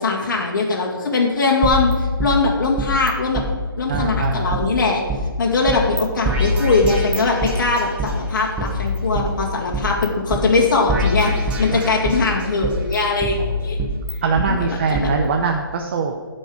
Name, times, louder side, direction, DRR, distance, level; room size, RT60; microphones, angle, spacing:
voice 1, 0.0-3.4 3.8-5.0 5.4-11.3 11.6-13.8 14.5-15.1, left 3 dB, 55° left, -1 dB, 2.2 m, -20 dB
sound 1, 1.6-3.1 3.3-3.5 3.9-5.2 5.7-6.0 6.2-8.1 8.6-10.0 10.3-10.4 10.9-12.3 12.6-14.5 14.9-15.1, equal, 10° right, 1.0 m, -24 dB
voice 2, 3.9-4.6 11.7-11.9 13.4-13.5 14.2-16.2, right 5 dB, 30° right, 3 dB, 0.7 m, -22 dB
15.0 x 5.4 x 5.1 m, 1.5 s
hypercardioid pair, 155°, 12 cm